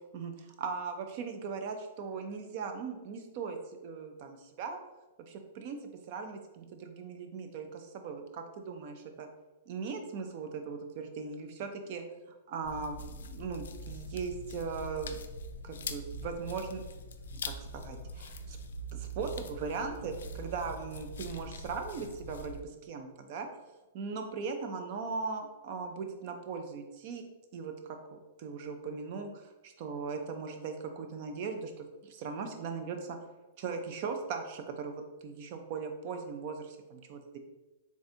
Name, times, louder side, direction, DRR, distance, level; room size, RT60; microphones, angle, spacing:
voice 1, 0.1-3.6 3.8-4.8 5.3-5.8 6.1-9.3 9.7-12.0 12.5-15.2 15.6-16.8 17.4-18.6 18.9-23.5 23.9-27.2 27.5-27.7 28.1-33.2 33.6-37.4, right 5 dB, 30° right, 6 dB, 0.4 m, -39 dB
sound 1, 12.6-22.6, left 1 dB, 90° left, 0.3 m, -43 dB
3.5 x 2.5 x 4.2 m, 1.1 s
hypercardioid pair, 180°, 0 cm